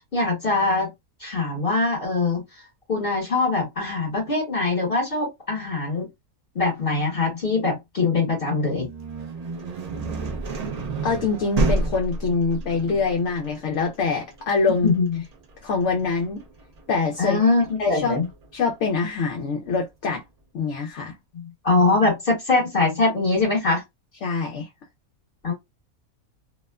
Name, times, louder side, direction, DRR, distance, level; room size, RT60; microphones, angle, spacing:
voice 1, 0.1-0.9 1.2-2.4 2.9-6.1 6.5-8.9 14.8-15.1 17.2-18.2 21.3-23.8 25.4-25.5, left 3 dB, 40° left, 1.3 m, -22 dB
sound 1, 8.7-18.5, right 2 dB, 85° right, 0.3 m, -30 dB
voice 2, 11.0-14.9 15.6-16.4 16.9-17.4 17.8-18.2 18.5-20.2 20.5-21.1 24.2-24.7, left 4 dB, 65° left, 0.8 m, -24 dB
2.8 x 2.0 x 2.2 m
omnidirectional pair, 1.5 m